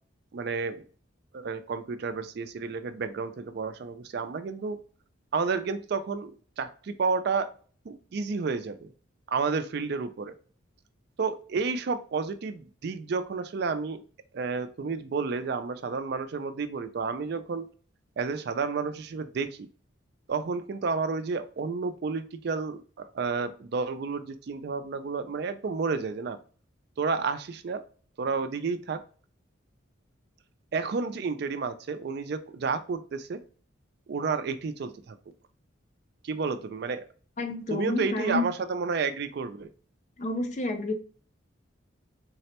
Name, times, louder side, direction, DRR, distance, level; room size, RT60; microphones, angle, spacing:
voice 1, 0.3-0.8 1.3-4.8 5.3-7.5 7.9-8.9 9.3-10.3 11.2-14.0 14.3-17.7 18.2-19.7 20.3-26.4 27.0-27.8 28.2-29.0 30.7-33.4 34.1-35.2 36.2-37.1 37.7-39.7, right 4 dB, 55° right, 10 dB, 0.4 m, -31 dB
voice 2, 37.4-38.5 40.2-40.9, left 2 dB, 35° left, 7 dB, 0.4 m, -29 dB
3.9 x 2.1 x 2.8 m, 0.40 s
head